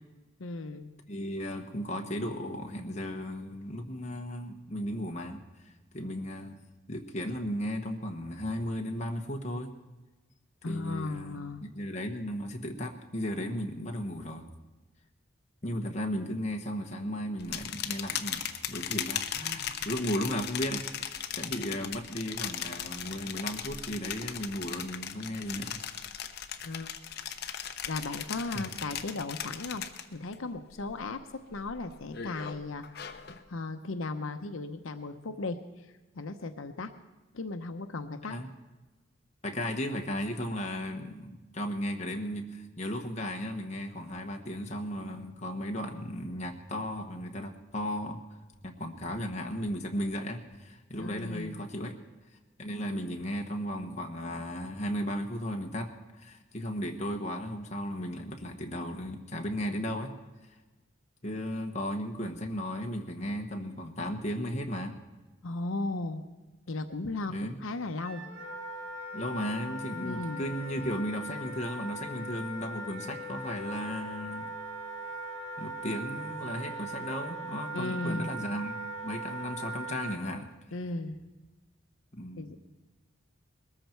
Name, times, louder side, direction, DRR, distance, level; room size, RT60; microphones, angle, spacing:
voice 1, 0.4-0.9 10.6-11.6 26.6-27.0 27.9-29.9 30.1-33.1 33.5-35.9 36.2-36.9 37.3-38.3 51.0-51.6 65.4-66.3 66.7-68.2 70.0-70.4 70.8-70.9 77.7-78.3 80.7-81.2 82.4-82.6, left 3 dB, 80° left, 8 dB, 0.8 m, -36 dB
voice 2, 1.1-5.4 5.9-6.5 6.9-9.7 10.6-14.5 15.6-25.7 28.5-28.7 38.3-38.5 39.4-48.2 48.6-52.0 52.6-60.1 61.2-64.9 67.3-67.6 69.1-74.6 75.6-78.7 79.0-80.5 82.1-82.5, equal, 35° left, 2 dB, 1.3 m, -35 dB
sound 1, 17.4-30.3 30.7-31.1 31.5-33.4, left 9 dB, 50° left, 0.9 m, -38 dB
sound 2, 44.0-45.3 45.8-47.2 47.7-48.1 48.5-50.7 50.9-51.6, equal, 5° right, 1.7 m, -56 dB
Wind instrument woodwind instrument, 68.0-80.2, right 2 dB, 80° right, 2.4 m, -40 dB
21.0 x 13.5 x 4.5 m, 1.2 s
head